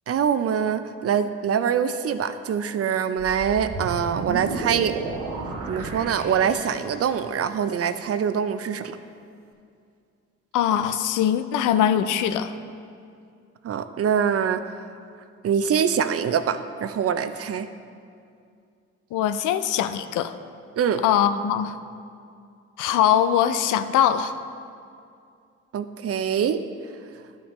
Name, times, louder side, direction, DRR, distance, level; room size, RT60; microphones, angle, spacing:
voice 1, 0.1-4.9 5.7-9.0 13.6-14.6 15.4-17.7 20.8-21.0 25.7-26.6, right 7 dB, 45° right, 11 dB, 0.5 m, -24 dB
sound 1, 3.2-7.1, right 3 dB, 80° right, 0.9 m, -33 dB
voice 2, 10.5-12.5 19.1-20.3 21.0-21.8 22.8-24.4, left 9 dB, 70° left, 11 dB, 0.5 m, -22 dB
12.0 x 5.8 x 3.2 m, 2.4 s
hypercardioid pair, 50°, 32 cm